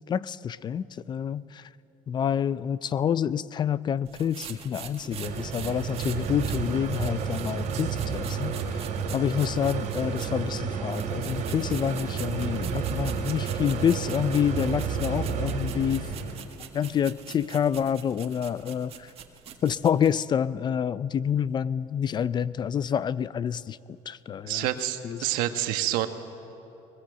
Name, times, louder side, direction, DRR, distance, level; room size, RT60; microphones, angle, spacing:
voice 1, 0.1-1.6 2.1-8.5 9.1-16.0 16.7-18.9 19.6-23.8 24.1-24.7 25.0-25.2, left 8 dB, 30° left, 18 dB, 0.4 m, -27 dB
sound 1, 4.1-10.5 10.9-20.1, right 8 dB, 45° right, 1.6 m, -44 dB
sound 2, 5.1-16.4, right 6 dB, 60° right, 2.5 m, -31 dB
voice 2, 24.4-26.1, right 13 dB, 90° right, 8 dB, 1.3 m, -27 dB
20.5 x 20.5 x 8.0 m, 2.9 s
cardioid pair, 135°, 14 cm